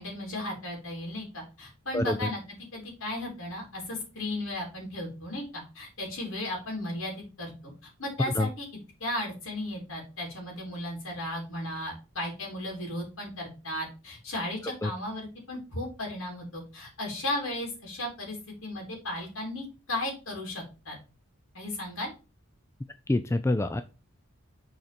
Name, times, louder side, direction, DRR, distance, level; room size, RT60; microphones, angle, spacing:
voice 1, 0.0-8.7 9.0-18.4 18.6-21.0 21.5-22.1, left 1 dB, 65° left, 0 dB, 3.3 m, -35 dB
voice 2, 1.9-2.3 8.3-8.5 14.8-14.9 23.1-23.8, left 1 dB, 10° left, 9 dB, 0.3 m, -26 dB
6.4 x 4.3 x 5.1 m, 0.31 s
head